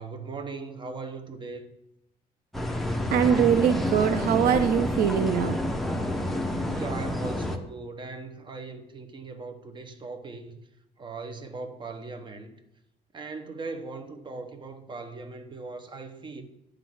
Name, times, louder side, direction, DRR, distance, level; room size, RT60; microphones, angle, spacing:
voice 1, 0.0-1.7 6.7-10.6 11.0-12.5 13.1-16.4, right 3 dB, 30° right, 1.1 m, -39 dB
sound 1, 2.5-7.6, left 1 dB, ahead, 0.9 m, -29 dB
voice 2, 3.1-5.6, right 8 dB, 65° right, 0.5 m, -22 dB
10.5 x 3.9 x 7.6 m
cardioid pair, 110°, 17 cm